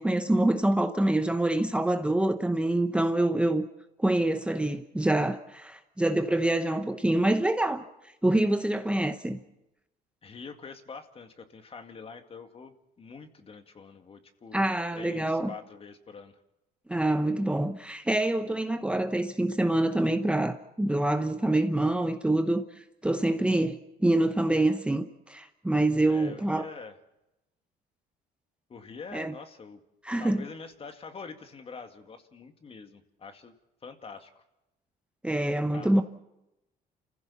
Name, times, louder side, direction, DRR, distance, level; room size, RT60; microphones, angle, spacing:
voice 1, 0.0-3.7 4.0-7.9 8.2-9.4 14.5-15.5 16.9-26.6 29.1-29.3 30.0-30.4 35.2-36.0, right 1 dB, 5° right, 0.9 m, -26 dB
voice 2, 10.2-16.4 26.1-27.0 28.7-29.8 30.2-33.5 33.8-34.4 35.7-36.0, left 5 dB, 35° left, 2.1 m, -45 dB
29.0 x 15.5 x 7.1 m
cardioid pair, 110°, 17 cm